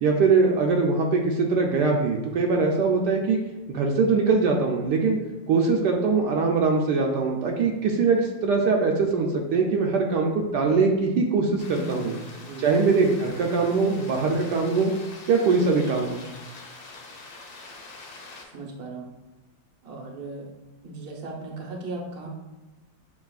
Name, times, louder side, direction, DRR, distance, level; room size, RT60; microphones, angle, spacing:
voice 1, 0.0-3.4 3.7-5.2 5.5-12.2 12.6-14.9 15.3-16.2, right 4 dB, 75° right, 1 dB, 1.1 m, -22 dB
sound 1, 11.6-18.4, left 3 dB, 60° left, 1.3 m, -44 dB
voice 2, 11.7-12.1 12.4-12.6 18.5-19.1 19.8-20.5 20.8-22.3, right 2 dB, 45° right, 0 dB, 0.8 m, -36 dB
7.3 x 2.9 x 2.3 m, 1.1 s
omnidirectional pair, 2.0 m